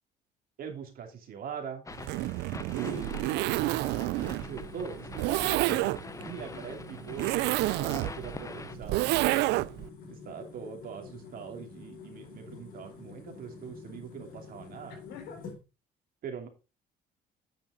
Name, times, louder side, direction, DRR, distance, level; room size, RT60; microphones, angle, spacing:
voice 1, 0.6-1.8 2.7-6.0 6.2-9.4 10.1-15.0 16.2-16.5, right 7 dB, 60° right, 2.9 m, -42 dB
sound 1, 1.8-8.7, left 3 dB, 20° left, 0.8 m, -45 dB
Zipper (clothing), 1.9-9.9, right 19 dB, 85° right, 0.4 m, -29 dB
sound 2, 2.8-15.6, left 4 dB, 60° left, 4.8 m, -47 dB
voice 2, 6.3-6.7 14.9-15.6, left 6 dB, 85° left, 3.9 m, -47 dB
9.2 x 6.9 x 3.9 m
cardioid pair, 110°, 17 cm